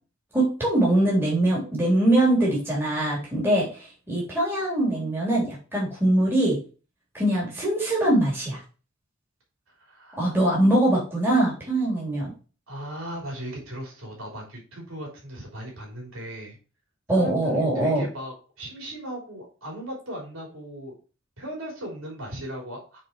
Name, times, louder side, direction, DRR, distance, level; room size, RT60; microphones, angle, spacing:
voice 1, 0.3-6.6 7.1-8.6 10.2-12.3 17.1-18.0, right 1 dB, 10° right, -5 dB, 3.5 m, -22 dB
voice 2, 9.8-10.4 12.7-16.6 17.1-20.9 21.4-23.0, right 1 dB, 70° right, -2 dB, 3.6 m, -37 dB
7.6 x 4.6 x 4.5 m, 0.35 s
head